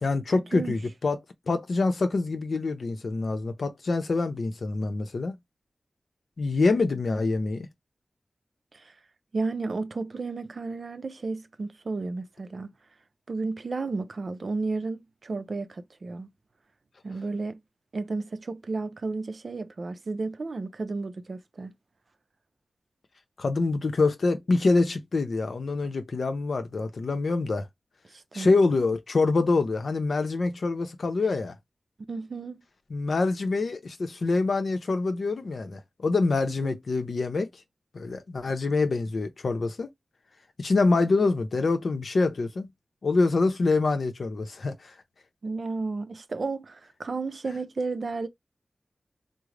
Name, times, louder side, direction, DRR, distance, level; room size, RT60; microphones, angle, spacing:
voice 1, 0.0-1.2 1.5-5.3 6.4-7.7 23.4-27.7 28.3-31.5 32.9-37.5 37.9-39.9 40.6-42.7 43.0-44.9, left 3 dB, 70° left, 0.6 m, -25 dB
voice 2, 9.3-12.7 13.3-16.3 17.0-17.6 17.9-21.7 28.1-28.5 32.1-32.6 36.5-36.8 45.4-48.3, right 3 dB, 60° right, 0.4 m, -33 dB
3.7 x 2.0 x 3.2 m
wide cardioid pair, 95°, 0 cm